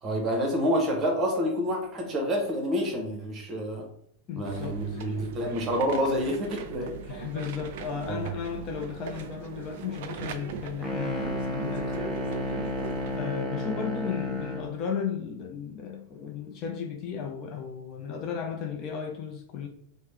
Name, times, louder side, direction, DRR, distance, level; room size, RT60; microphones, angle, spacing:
voice 1, 0.0-3.8 4.4-6.9 8.1-8.2, equal, 25° right, 0.9 m, -28 dB
voice 2, 4.3-5.1 7.1-12.2 12.5-12.6 13.2-19.7, left 7 dB, 35° left, 0.5 m, -35 dB
sound 1, 4.5-13.2, right 6 dB, 50° right, 0.3 m, -40 dB
sound 2, 10.8-14.8, left 1 dB, ahead, 0.7 m, -32 dB
3.1 x 2.1 x 3.1 m
figure-of-eight pair, 90°, 0 cm